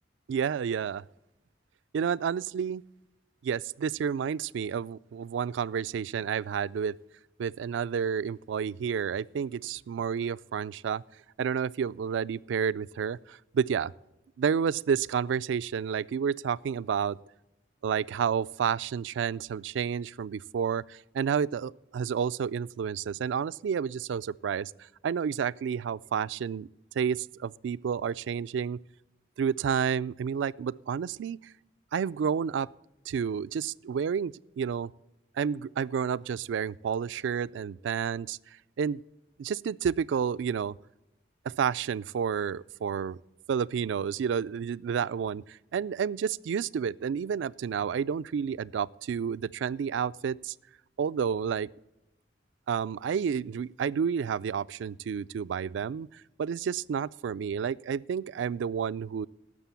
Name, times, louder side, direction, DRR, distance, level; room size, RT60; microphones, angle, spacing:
voice 1, 0.3-1.0 1.9-2.8 3.4-6.9 7.4-11.0 11.4-13.9 14.4-17.2 17.8-26.7 27.0-28.8 29.4-31.5 31.9-32.7 33.1-34.9 35.4-38.4 38.8-39.0 39.4-40.7 41.4-43.2 43.5-50.5 51.0-51.7 52.7-59.3, right 7 dB, 75° right, 0.3 m, -30 dB
11.5 x 7.4 x 7.0 m
head